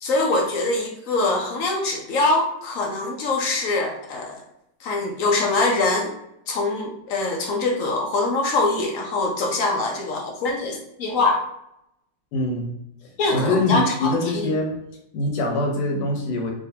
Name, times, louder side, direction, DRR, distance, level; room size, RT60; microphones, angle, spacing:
voice 1, 0.0-4.4 4.8-6.1 6.5-11.4 13.2-14.5, left 2 dB, 65° left, 1 dB, 0.8 m, -23 dB
voice 2, 12.3-12.7 13.0-14.8 15.1-16.5, left 2 dB, 85° left, 0 dB, 1.5 m, -24 dB
3.5 x 2.8 x 2.7 m, 0.81 s
omnidirectional pair, 1.8 m